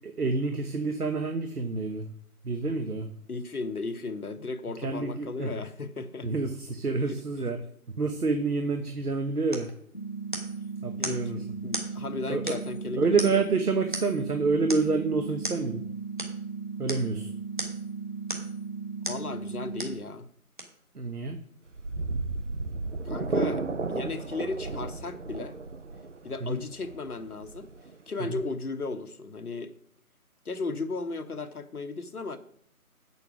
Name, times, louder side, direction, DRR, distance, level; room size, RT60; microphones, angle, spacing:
voice 1, 0.0-2.1 2.4-3.1 4.8-5.5 6.2-7.6 8.0-9.7 10.8-11.4 12.3-12.6 13.0-15.8 16.8-17.3 20.9-21.4 26.4-26.6 28.2-28.4, right 4 dB, 85° right, 7 dB, 1.2 m, -28 dB
voice 2, 3.3-6.3 7.1-7.2 11.0-13.3 19.1-20.3 23.0-25.6 26.2-27.7 28.1-29.7 30.4-32.4, left 3 dB, 75° left, 10 dB, 1.2 m, -35 dB
sound 1, 9.5-9.7 10.3-10.6 11.0-11.2 11.7-11.9 12.5-12.8 13.2-13.5 13.9-14.2 14.7-14.9 15.4-15.6 16.2-16.4 16.9-17.1 17.6-17.9 18.3-18.6 19.0-19.3 19.8-20.0 20.6-20.7, right 1 dB, 35° right, 1.2 m, -36 dB
sound 2, 9.9-19.9, right 5 dB, 40° left, 0.5 m, -37 dB
sound 3, 21.7-28.5, right 3 dB, 55° right, 0.6 m, -33 dB
8.3 x 6.9 x 6.0 m, 0.63 s
figure-of-eight pair, 170°, 45 cm